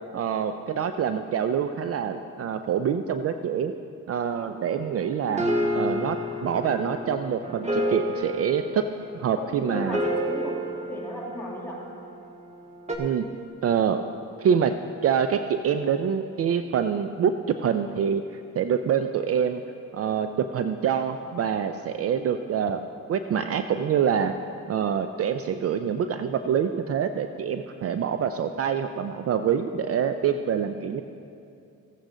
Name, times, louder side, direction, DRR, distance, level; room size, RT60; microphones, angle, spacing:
voice 1, 0.1-3.7 4.1-5.4 5.7-8.8 9.2-10.0 13.0-13.3 13.6-14.0 14.4-14.8 15.0-17.3 17.6-18.2 18.6-19.6 19.9-22.8 23.1-24.3 24.7-31.0, right 8 dB, 50° right, 9 dB, 0.5 m, -26 dB
sound 1, 4.7-12.1 12.9-13.0, equal, 20° right, 1.5 m, -30 dB
voice 2, 9.4-11.9, left 2 dB, 5° left, -4 dB, 2.5 m, -36 dB
15.5 x 8.2 x 3.8 m, 2.6 s
cardioid pair, 90°, 30 cm